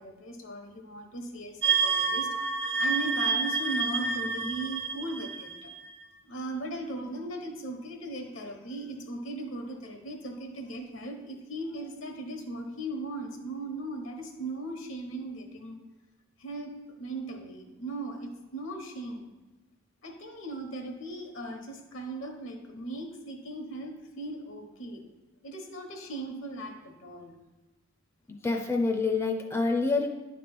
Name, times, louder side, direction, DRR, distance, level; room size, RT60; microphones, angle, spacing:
voice 1, 0.0-2.3 2.8-5.7 6.3-15.8 16.4-19.3 20.0-25.0 25.4-27.3, right 2 dB, 70° left, 3 dB, 1.2 m, -38 dB
sound 1, 1.6-6.0, right 5 dB, 60° right, 0.8 m, -29 dB
voice 2, 28.4-30.1, left 3 dB, 15° left, 2 dB, 0.5 m, -26 dB
9.6 x 3.3 x 6.0 m, 1.1 s
head